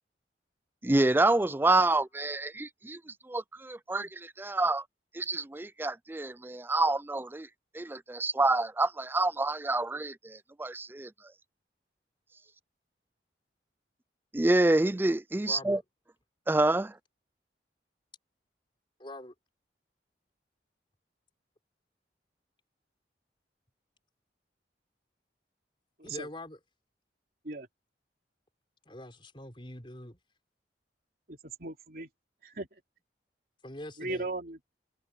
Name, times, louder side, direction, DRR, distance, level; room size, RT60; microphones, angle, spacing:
voice 1, 0.8-4.8 5.1-7.5 7.7-11.1 14.3-15.8 16.5-17.0, right 2 dB, 10° right, 0.4 m, -27 dB
voice 2, 15.4-15.8 19.0-19.3 26.0-26.6 28.9-30.2 33.6-34.3, left 1 dB, 30° left, 4.4 m, -44 dB
voice 3, 31.3-32.1 32.4-32.7 34.0-34.6, right 2 dB, 55° right, 3.4 m, -37 dB
head